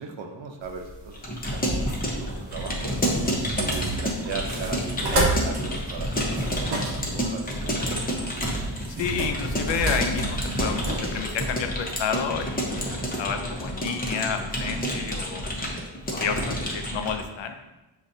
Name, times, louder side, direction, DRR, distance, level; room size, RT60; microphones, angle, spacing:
voice 1, 0.0-3.0 3.6-8.4, right 5 dB, 75° right, 3 dB, 0.7 m, -38 dB
sound 1, 0.6-11.5, right 2 dB, 55° right, 1.1 m, -31 dB
Keyboard (musical) / Computer keyboard, 1.1-17.2, equal, 20° left, 0.8 m, -29 dB
voice 2, 8.9-10.8 11.1-12.8 13.2-15.5 16.1-17.6, left 6 dB, 70° left, 6 dB, 0.6 m, -30 dB
7.0 x 2.5 x 2.6 m, 1.0 s
wide cardioid pair, 120°, 46 cm